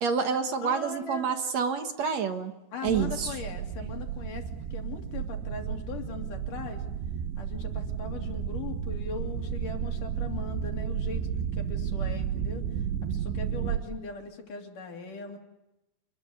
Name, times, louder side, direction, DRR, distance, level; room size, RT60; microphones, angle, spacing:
voice 1, 0.0-2.5 2.8-3.3, right 6 dB, 55° right, 7 dB, 2.1 m, -28 dB
voice 2, 0.6-1.3 2.7-6.8 7.4-12.8 13.1-15.4, left 5 dB, 55° left, 3 dB, 4.2 m, -40 dB
sound 1, 2.9-13.8, right 8 dB, 85° right, 3.6 m, -32 dB
27.5 x 21.5 x 9.7 m, 0.94 s
omnidirectional pair, 4.8 m